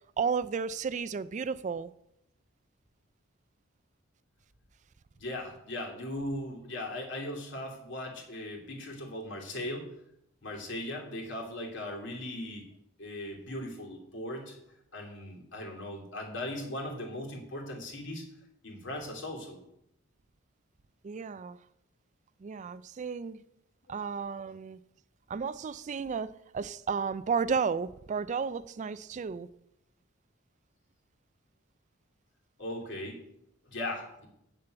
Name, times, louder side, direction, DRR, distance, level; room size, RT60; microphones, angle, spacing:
voice 1, 0.2-1.9 21.0-21.6 22.4-23.4 23.9-24.8 25.3-29.5, right 5 dB, 35° right, 0.3 m, -33 dB
voice 2, 5.1-9.9 10.4-12.7 13.0-14.6 14.9-18.3 18.6-19.6 32.6-33.2 33.7-34.3, left 1 dB, 65° left, 2.8 m, -38 dB
8.3 x 6.8 x 7.9 m
head